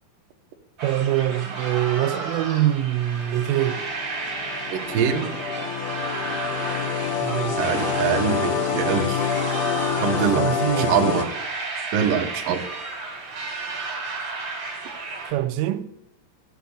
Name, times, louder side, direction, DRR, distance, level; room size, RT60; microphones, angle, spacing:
sound 1, 0.8-15.3, right 3 dB, 25° right, 3.9 m, -33 dB
voice 1, 0.8-3.9 7.2-7.6 10.4-11.0 15.3-15.9, right 13 dB, 90° right, 3.2 m, -24 dB
sound 2, 3.3-11.3, left 6 dB, 65° left, 2.8 m, -27 dB
voice 2, 4.7-5.3 7.6-9.2 10.0-11.3 11.9-12.6, right 7 dB, 65° right, 2.3 m, -24 dB
15.0 x 8.0 x 8.4 m
omnidirectional pair, 5.6 m